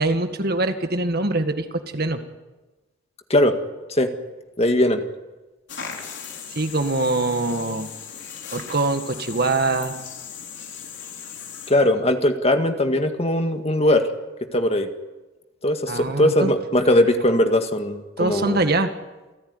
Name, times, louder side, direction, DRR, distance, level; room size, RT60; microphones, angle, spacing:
voice 1, 0.0-1.7 1.9-2.2 6.6-7.9 8.5-9.9 15.9-16.5 18.2-18.9, right 2 dB, 50° right, 7 dB, 1.9 m, -23 dB
voice 2, 4.6-5.0 11.7-14.1 14.5-14.9 15.6-18.6, left 1 dB, 30° left, 6 dB, 1.9 m, -20 dB
sound 1, 5.7-11.7, left 7 dB, 60° left, 4.7 m, -37 dB
28.5 x 15.0 x 9.7 m, 1.1 s
head